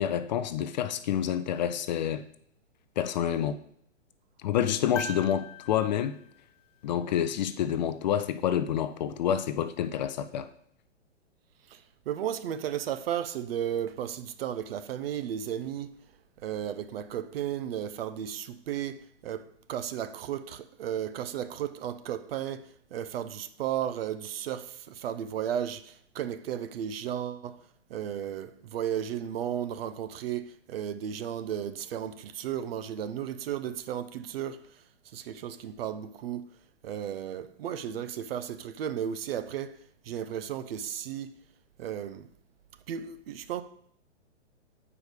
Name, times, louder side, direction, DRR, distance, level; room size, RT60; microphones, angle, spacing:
voice 1, 0.0-2.2 3.0-3.6 4.4-6.2 6.8-10.5, left 9 dB, 40° left, 0.4 m, -28 dB
sound 1, 5.0-7.3 9.3-9.4, left 3 dB, 90° left, 0.7 m, -42 dB
voice 2, 11.7-16.0 16.4-27.6 27.9-34.8 35.1-36.5 36.8-39.8 40.0-41.3 41.8-42.3 42.9-43.6, right 9 dB, 55° right, 0.7 m, -34 dB
8.1 x 4.9 x 5.0 m
hypercardioid pair, 135°, 36 cm